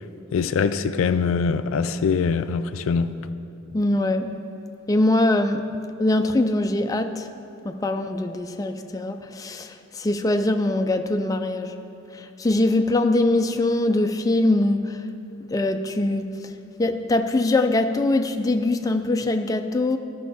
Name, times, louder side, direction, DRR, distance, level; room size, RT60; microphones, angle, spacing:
voice 1, 0.3-3.1, left 5 dB, 90° left, 0.4 m, -23 dB
voice 2, 3.7-4.3 4.9-5.7 6.0-7.3 7.6-11.8 12.1-15.1 15.5-16.5 16.8-20.0, left 2 dB, 20° left, 0.3 m, -22 dB
14.0 x 5.4 x 4.2 m
head